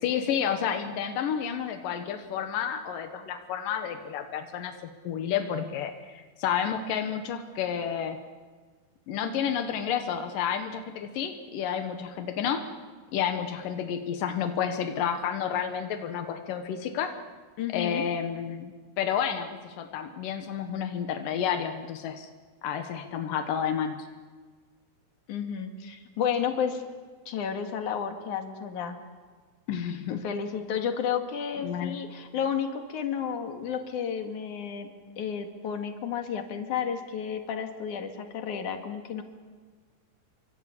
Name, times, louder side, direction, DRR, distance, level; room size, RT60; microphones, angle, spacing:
voice 1, 0.0-4.8 5.0-8.2 9.1-12.7 13.1-17.1 17.7-22.3 22.6-24.1 29.7-30.3 31.6-32.0, left 8 dB, 80° left, 6 dB, 1.9 m, -30 dB
voice 2, 17.6-18.1 25.3-26.8 27.3-29.0 30.1-34.9 35.2-39.2, left 7 dB, 50° left, 5 dB, 2.6 m, -32 dB
28.0 x 25.0 x 8.5 m, 1.5 s
omnidirectional pair, 5.7 m